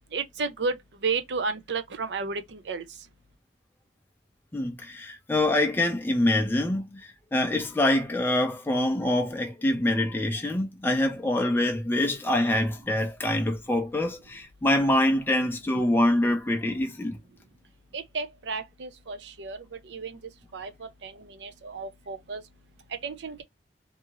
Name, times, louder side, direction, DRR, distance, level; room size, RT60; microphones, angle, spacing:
voice 1, 0.1-0.7 1.0-2.8 17.9-19.6 19.9-20.2 20.5-22.4 23.0-23.4, right 4 dB, 75° right, 0.5 m, -32 dB
voice 2, 4.5-6.8 7.3-17.2, left 1 dB, 10° left, 0.4 m, -25 dB
2.7 x 2.6 x 2.7 m
head